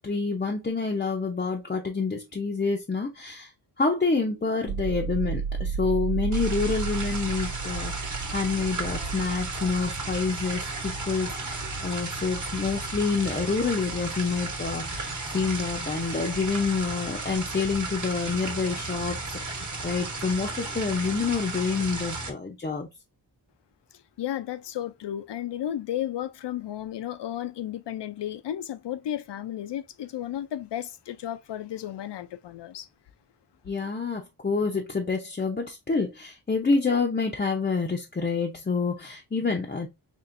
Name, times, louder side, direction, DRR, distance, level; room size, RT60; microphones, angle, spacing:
voice 1, 0.0-3.5 3.8-19.2 19.5-22.9 33.7-39.9, left 4 dB, 25° left, 0.5 m, -28 dB
sound 1, 4.7-18.5 18.8-19.7, right 6 dB, 85° right, 0.5 m, -36 dB
sound 2, 6.3-22.3, right 2 dB, 45° right, 1.1 m, -34 dB
voice 2, 24.2-32.9, left 11 dB, 80° left, 0.5 m, -33 dB
4.4 x 3.0 x 2.5 m
wide cardioid pair, 120°, 41 cm